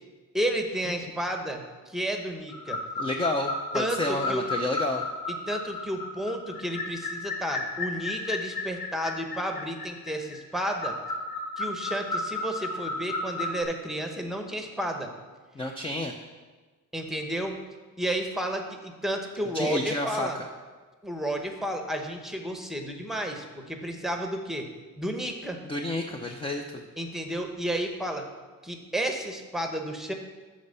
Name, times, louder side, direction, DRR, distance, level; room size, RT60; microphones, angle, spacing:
voice 1, 0.3-2.8 3.7-4.4 5.5-10.9 11.6-15.1 16.9-17.6 18.0-20.4 21.0-24.7 25.0-25.6 27.0-28.3 28.6-30.1, right 1 dB, ahead, 3 dB, 0.9 m, -32 dB
sound 1, 2.5-13.6, left 2 dB, 85° left, 1.4 m, -33 dB
voice 2, 3.0-5.0 15.5-16.1 19.5-20.3 25.6-26.6, left 2 dB, 15° left, 3 dB, 0.5 m, -30 dB
12.5 x 4.3 x 6.7 m, 1.3 s
cardioid pair, 150°, 35 cm